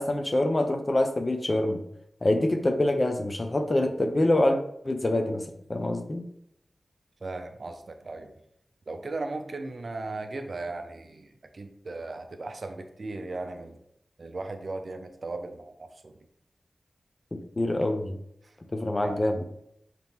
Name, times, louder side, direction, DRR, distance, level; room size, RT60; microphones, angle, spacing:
voice 1, 0.0-1.8 2.2-4.6 4.8-6.2 17.6-18.2 18.7-19.4, left 1 dB, 35° left, 5 dB, 0.5 m, -25 dB
voice 2, 7.2-8.3 8.9-13.8 14.2-16.1 18.4-18.5 19.0-19.2, right 2 dB, 55° right, 6 dB, 0.5 m, -37 dB
4.1 x 2.9 x 3.5 m, 0.74 s
wide cardioid pair, 100°, 0 cm